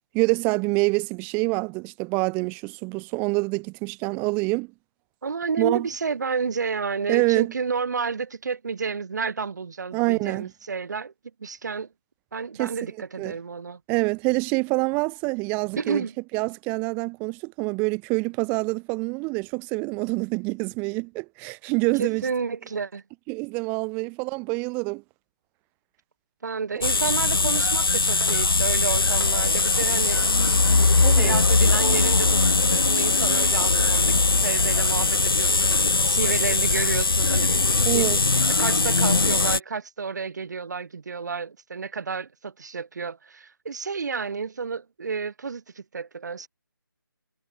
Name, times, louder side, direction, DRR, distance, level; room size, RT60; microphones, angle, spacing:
voice 1, 0.1-4.7 5.6-5.9 7.1-7.5 9.9-10.5 12.6-12.7 13.2-13.3 13.9-16.0 16.3-22.2 23.3-25.0 31.0-31.3 37.9-38.2, right 30 dB, 15° right, 2.4 m, -26 dB
voice 2, 5.2-11.1 11.4-11.9 12.3-13.8 15.8-16.1 22.0-23.0 26.4-30.6 31.2-32.4 32.7-38.1 38.6-46.5, right 5 dB, 50° right, 7.3 m, -31 dB
sound 1, 26.8-39.6, left 3 dB, 75° left, 1.8 m, -21 dB
figure-of-eight pair, 160°, 12 cm